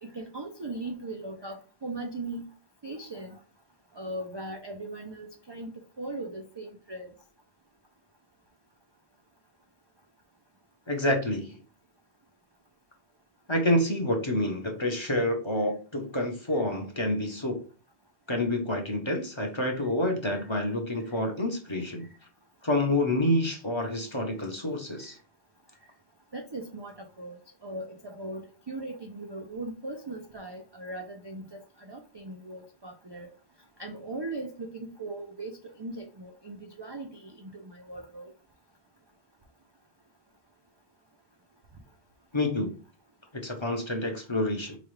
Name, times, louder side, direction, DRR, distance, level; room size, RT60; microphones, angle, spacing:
voice 1, 0.0-2.5 2.8-3.4 3.9-5.7 6.0-7.1 26.3-27.4 27.6-33.3 33.8-38.3, right 2 dB, 40° right, 2 dB, 0.3 m, -39 dB
voice 2, 10.9-11.6 13.5-17.6 18.3-22.1 22.6-25.2 42.3-42.7 43.4-44.8, left 1 dB, 30° left, 2 dB, 0.7 m, -28 dB
5.0 x 2.3 x 3.1 m, 0.37 s
omnidirectional pair, 1.1 m